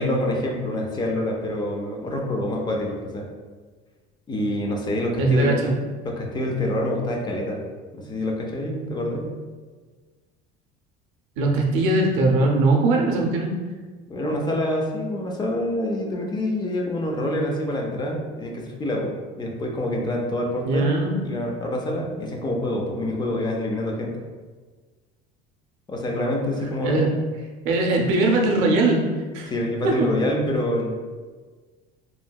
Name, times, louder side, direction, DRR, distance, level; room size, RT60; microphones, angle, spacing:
voice 1, 0.0-3.3 4.3-5.5 6.0-7.6 7.9-9.3 14.1-24.1 25.9-27.1 29.5-31.0, left 1 dB, 20° left, 0 dB, 0.4 m, -26 dB
voice 2, 5.1-5.7 11.4-13.5 20.6-21.2 26.8-27.1 27.6-29.0 29.3-29.5 29.8-30.1, right 2 dB, 85° right, 1 dB, 0.6 m, -20 dB
3.0 x 2.6 x 2.2 m, 1.4 s
cardioid pair, 135°, 20 cm